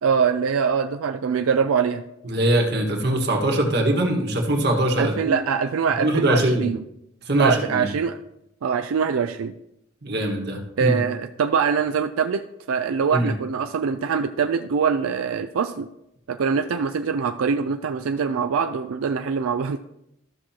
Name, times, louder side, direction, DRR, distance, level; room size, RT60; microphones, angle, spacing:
voice 1, 0.0-2.0 5.0-6.8 7.4-8.2 8.6-9.5 10.8-15.9 16.3-19.8, right 6 dB, 90° right, 7 dB, 0.4 m, -23 dB
voice 2, 2.3-5.3 6.0-6.6 7.3-7.9 10.0-11.0 13.1-13.3, right 1 dB, 50° right, 1 dB, 1.6 m, -22 dB
13.5 x 6.2 x 2.9 m, 0.82 s
head